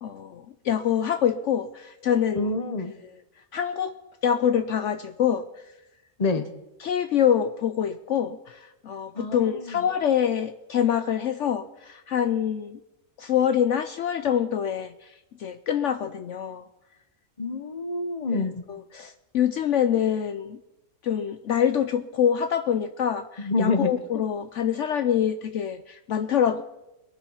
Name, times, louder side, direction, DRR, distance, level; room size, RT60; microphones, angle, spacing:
voice 1, 0.0-2.5 3.5-3.9 4.2-5.4 6.8-12.8 13.2-15.1 15.4-16.6 18.3-20.6 21.0-26.6, left 9 dB, 65° left, 10 dB, 0.9 m, -25 dB
voice 2, 2.4-2.9 6.2-6.5 9.1-9.8 17.4-18.6 23.4-24.2, left 3 dB, 30° left, 9 dB, 1.0 m, -27 dB
22.0 x 7.6 x 5.6 m, 0.92 s
omnidirectional pair, 1.5 m